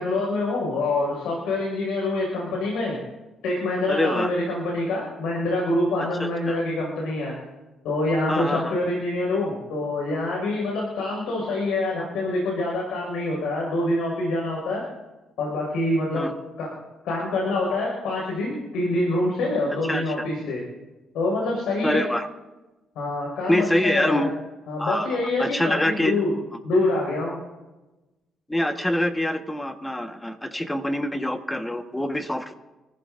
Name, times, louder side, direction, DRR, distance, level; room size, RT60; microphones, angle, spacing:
voice 1, 0.0-3.0 3.4-7.3 7.8-14.8 15.4-16.7 17.0-20.6 21.1-22.1 23.0-24.3 24.7-26.3 26.6-27.4, left 2 dB, 90° left, -2 dB, 5.6 m, -26 dB
voice 2, 3.9-4.3 6.2-6.6 8.3-8.7 16.1-16.3 19.8-20.1 21.8-22.3 23.5-24.3 24.8-26.1 28.5-32.5, left 1 dB, 10° left, 6 dB, 1.4 m, -25 dB
27.0 x 15.0 x 2.7 m, 1.1 s
cardioid pair, 90°, 0 cm